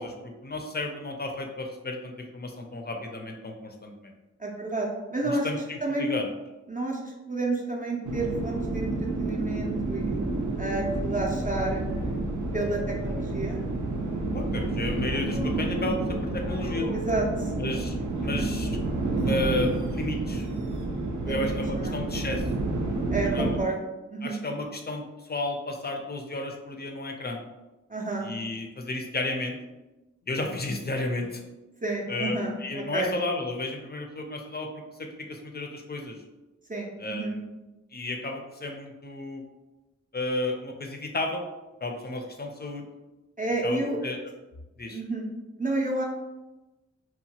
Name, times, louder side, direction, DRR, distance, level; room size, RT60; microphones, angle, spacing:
voice 1, 0.0-4.1 5.2-6.2 14.3-16.9 17.5-18.0 18.2-18.7 19.3-20.5 21.3-22.4 23.2-23.6 24.2-27.4 28.2-29.6 30.3-31.4 32.1-34.7 35.0-36.2 37.0-37.4 37.9-39.4 40.1-41.4 41.8-42.9 43.6-44.2 44.8-45.0, left 2 dB, 35° left, 3 dB, 0.5 m, -32 dB
voice 2, 4.4-5.5 5.8-6.1 6.7-8.9 9.2-10.2 10.6-11.8 12.5-13.6 16.9-17.5 18.2-18.5 21.2-22.0 23.1-23.8 24.1-24.4 27.9-28.3 31.8-33.1 36.7-37.4 43.4-44.0 44.9-45.3 45.6-46.0, right 2 dB, 30° right, -2 dB, 0.5 m, -30 dB
sound 1, 8.0-23.6, right 2 dB, 85° right, 0.4 m, -30 dB
Boat Water vehicle, 10.7-19.6, left 2 dB, 75° left, 0.7 m, -39 dB
2.9 x 2.1 x 2.8 m, 1.0 s
wide cardioid pair, 60°, 29 cm